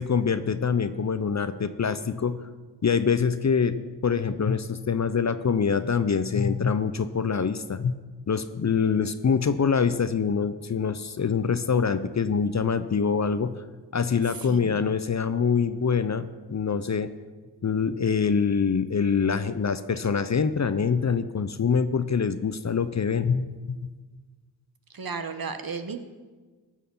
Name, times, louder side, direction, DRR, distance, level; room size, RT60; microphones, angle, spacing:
voice 1, 0.0-2.4 2.8-13.6 13.9-17.1 17.6-23.9, left 6 dB, 40° left, 12 dB, 0.6 m, -25 dB
voice 2, 14.3-14.8 24.9-26.0, right 5 dB, 50° right, 9 dB, 1.1 m, -34 dB
15.0 x 6.4 x 5.5 m, 1.4 s
cardioid pair, 40°, 45 cm